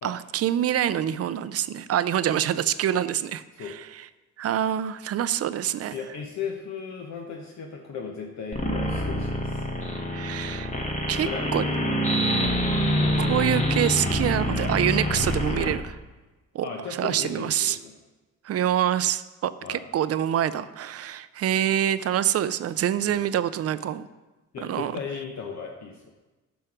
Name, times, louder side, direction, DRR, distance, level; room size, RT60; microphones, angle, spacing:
voice 1, 0.0-3.8 4.4-5.9 10.1-10.7 11.1-11.7 13.2-16.0 16.5-16.7 17.0-17.8 18.4-24.0 24.6-24.9, right 10 dB, 55° right, 15 dB, 0.5 m, -26 dB
voice 2, 5.9-9.7 11.2-11.5 12.1-12.3 16.6-18.0 19.6-19.8 23.0-23.2 24.5-26.1, left 6 dB, 65° left, 1 dB, 1.0 m, -36 dB
sound 1, 8.5-15.7, equal, 25° left, 1.6 m, -26 dB
9.1 x 6.3 x 4.9 m, 1.1 s
cardioid pair, 90°, 30 cm